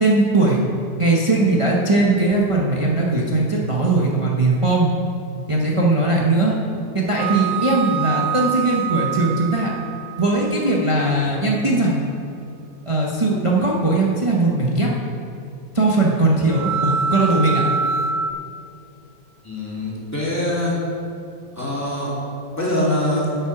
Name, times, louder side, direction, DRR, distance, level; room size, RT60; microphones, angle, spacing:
voice 1, 0.0-0.6 1.0-4.9 5.5-6.6 6.9-9.7 10.2-12.0 12.9-14.9 15.7-17.6, right 2 dB, 25° right, -3 dB, 0.8 m, -19 dB
sound 1, 7.1-11.6 16.5-18.3, right 6 dB, 80° right, 1.2 m, -26 dB
voice 2, 19.4-20.7 21.5-22.1 22.6-23.2, left 1 dB, 10° left, -7 dB, 2.7 m, -23 dB
9.1 x 7.9 x 6.0 m, 2.5 s
omnidirectional pair, 1.9 m